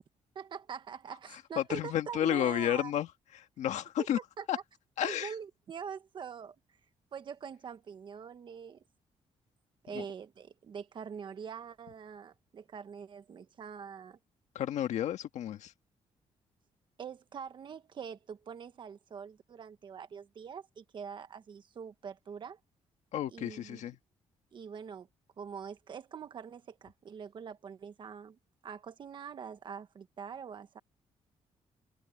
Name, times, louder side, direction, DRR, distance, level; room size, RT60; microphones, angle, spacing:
voice 1, 0.3-2.9 4.0-4.1 4.4-4.6 5.0-6.6 7.1-8.8 9.8-14.2 17.0-22.6 23.3-23.9 24.5-25.1 25.4-30.8, right 7 dB, 40° right, 1.4 m, -44 dB
voice 2, 1.3-4.2 4.5-4.6 5.0-5.3 9.9-10.0 14.5-15.7 23.1-24.0, left 11 dB, 80° left, 1.7 m, -32 dB
cardioid pair, 165°, 12 cm